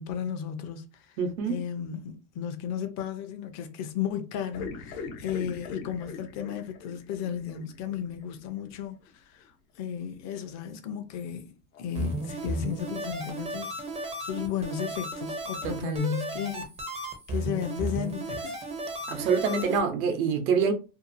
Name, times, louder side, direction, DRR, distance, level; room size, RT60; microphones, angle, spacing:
voice 1, 0.0-1.2 1.5-16.7 17.3-18.6, left 8 dB, 40° left, 0.6 m, -34 dB
voice 2, 1.2-1.6 15.6-16.1 19.1-20.7, right 5 dB, 85° right, 0.8 m, -26 dB
sound 1, 4.5-8.8 9.1-9.2 11.2-11.3 11.7-11.8, left 4 dB, 85° left, 0.9 m, -42 dB
sound 2, 11.9-19.8, right 1 dB, 15° right, 0.5 m, -34 dB
2.7 x 2.3 x 2.5 m
supercardioid pair, 135°, 42 cm